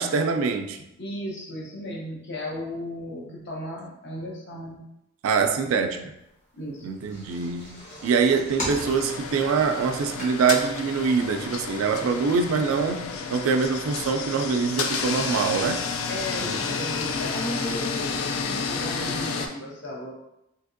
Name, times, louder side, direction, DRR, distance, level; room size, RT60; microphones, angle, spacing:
voice 1, 0.0-0.8 5.2-6.1 6.8-15.8 16.4-16.6, right 5 dB, 75° right, 0.3 m, -24 dB
voice 2, 1.0-4.8 6.5-6.9 16.1-20.1, left 1 dB, 55° left, 0.7 m, -35 dB
sound 1, 6.8-10.7 11.2-11.3 11.6-11.7, equal, 40° left, 1.2 m, -37 dB
sound 2, 8.7-19.5, left 5 dB, 90° left, 0.4 m, -31 dB
3.4 x 2.8 x 2.5 m
head